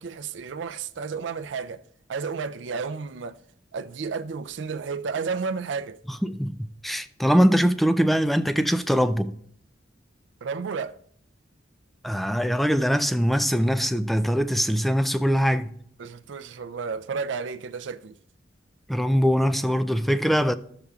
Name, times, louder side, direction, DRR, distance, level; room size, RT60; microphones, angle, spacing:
voice 1, 0.0-1.8 2.1-3.4 3.7-6.0 10.4-11.0 16.0-18.2, right 5 dB, 75° right, 0.4 m, -32 dB
voice 2, 6.2-9.3 12.0-15.7 18.9-20.5, equal, ahead, 0.3 m, -22 dB
14.0 x 6.7 x 2.4 m
head